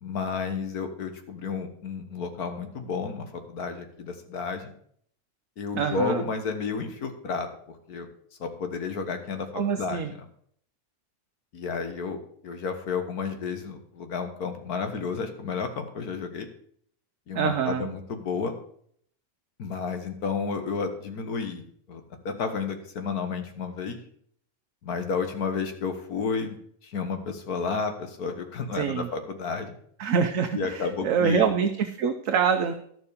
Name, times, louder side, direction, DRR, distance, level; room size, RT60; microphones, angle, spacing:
voice 1, 0.0-4.7 5.6-7.5 7.9-8.1 8.4-10.3 11.5-12.2 12.4-16.5 17.3-18.5 19.6-21.6 21.9-24.0 24.8-26.6 26.8-29.7 30.5-31.5, left 5 dB, 85° left, 6 dB, 1.9 m, -31 dB
voice 2, 5.8-6.2 9.6-10.1 17.3-17.9 28.8-29.1 30.0-31.7 32.0-32.7, right 6 dB, 65° right, 6 dB, 1.1 m, -25 dB
11.5 x 7.1 x 5.0 m, 0.62 s
omnidirectional pair, 1.6 m